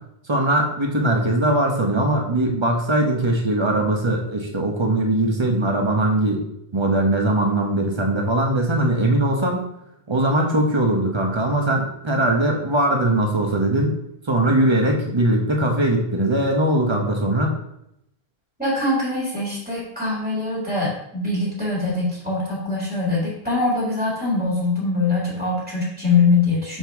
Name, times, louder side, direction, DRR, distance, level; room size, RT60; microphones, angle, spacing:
voice 1, 0.3-6.4 6.7-9.7 10.1-13.9 14.2-17.5, right 1 dB, 30° right, 1 dB, 1.0 m, -20 dB
voice 2, 18.6-26.8, left 3 dB, 10° right, -7 dB, 1.9 m, -23 dB
6.6 x 4.5 x 3.5 m, 0.79 s
omnidirectional pair, 1.0 m